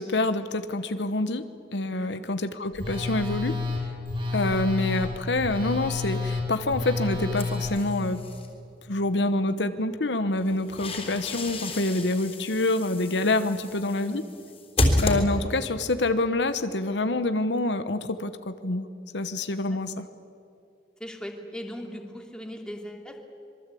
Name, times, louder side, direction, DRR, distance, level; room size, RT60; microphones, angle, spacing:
voice 1, 0.0-1.5 1.7-3.6 4.3-8.2 8.9-14.2 15.0-18.9 19.1-20.1, left 2 dB, 80° left, 10 dB, 1.1 m, -26 dB
Telephone, 2.7-7.7, left 3 dB, 30° right, 7.9 m, -30 dB
sound 1, 7.4-8.5 10.4-15.8, left 1 dB, 35° left, 3.6 m, -30 dB
voice 2, 13.9-14.2 19.6-19.8 21.0-23.3, equal, 5° left, 2 dB, 2.7 m, -39 dB
25.5 x 22.5 x 8.5 m, 2.5 s
head